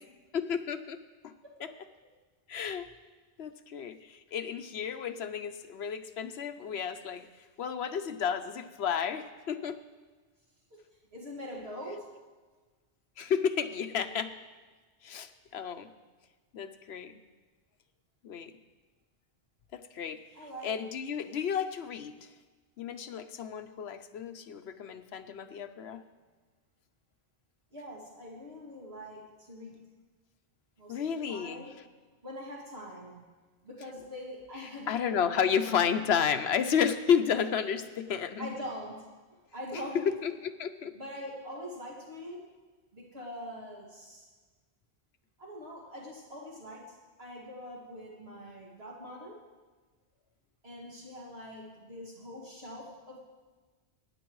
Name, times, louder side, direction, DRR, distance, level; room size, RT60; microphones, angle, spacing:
voice 1, 0.3-1.0 1.2-1.3 1.6-1.7 2.5-2.9 3.4-7.3 7.6-9.8 13.2-14.3 15.0-15.9 16.5-17.2 18.2-18.5 19.7-20.2 20.6-22.3 22.8-26.0 30.9-31.7 34.9-38.5 39.7-39.8 40.2-40.9, left 7 dB, 70° left, 9 dB, 0.9 m, -32 dB
voice 2, 1.4-1.8 10.7-10.8 11.1-12.2 20.3-20.7 27.7-29.8 30.8-31.7 32.2-33.2 33.6-35.9 38.4-39.1 39.5-40.1 40.9-42.5 42.9-44.3 45.4-49.4 50.6-53.2, equal, 65° right, -4 dB, 2.5 m, -43 dB
23.0 x 9.7 x 3.1 m, 1.3 s
omnidirectional pair, 1.1 m